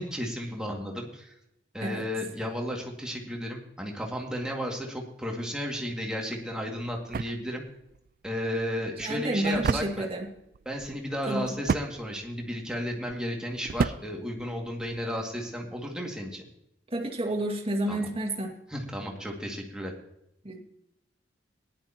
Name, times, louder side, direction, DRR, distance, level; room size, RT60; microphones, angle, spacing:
voice 1, 0.0-1.3 1.7-7.6 8.2-10.1 10.7-16.4 17.9-18.1 18.7-19.9, equal, 5° right, -1 dB, 2.3 m, -33 dB
sound 1, 6.3-15.1, right 5 dB, 50° right, 0.3 m, -35 dB
voice 2, 9.0-10.3 11.3-11.6 16.9-18.6 20.4-20.6, right 1 dB, 35° right, 1 dB, 2.2 m, -30 dB
18.0 x 11.5 x 3.0 m, 0.81 s
head